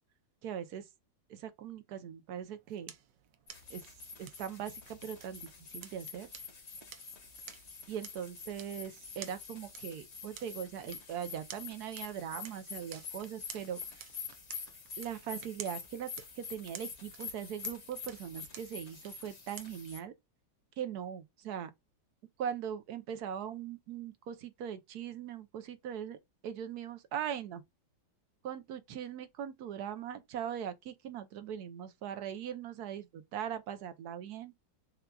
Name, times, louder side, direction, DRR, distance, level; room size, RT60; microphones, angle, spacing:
voice 1, 0.4-0.9 1.3-2.9 3.7-3.9 4.2-5.5 5.7-6.3 7.9-14.0 15.0-20.1 20.8-21.7 22.4-26.2 26.4-27.6 28.4-34.5, right 9 dB, 70° right, 1.1 m, -40 dB
sound 1, 2.3-20.1, right 10 dB, 85° right, 1.3 m, -53 dB
sound 2, 3.5-20.0, left 5 dB, 45° left, 1.1 m, -47 dB
6.6 x 2.4 x 2.3 m
omnidirectional pair, 1.9 m